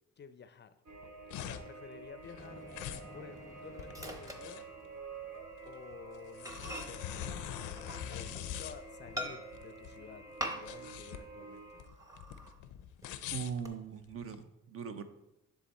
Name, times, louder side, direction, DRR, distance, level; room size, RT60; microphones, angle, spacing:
voice 1, 0.2-0.7 1.4-2.7 3.1-4.6 5.7-11.8, left 7 dB, 35° left, 12 dB, 0.5 m, -52 dB
sound 1, 0.9-14.4, left 10 dB, 85° left, 0.5 m, -44 dB
sound 2, 0.9-11.8, right 4 dB, 75° right, 1.2 m, -50 dB
Microwave oven, 2.4-5.2 5.6-5.8 6.1-6.2 6.4-8.5 9.2-9.8 10.4-11.0 11.3-11.4 11.8-12.6 13.0-13.7, equal, 10° right, 0.9 m, -44 dB
voice 2, 13.3-15.0, right 7 dB, 50° right, 9 dB, 0.7 m, -40 dB
10.0 x 3.5 x 4.2 m, 0.89 s
cardioid pair, 90°, 30 cm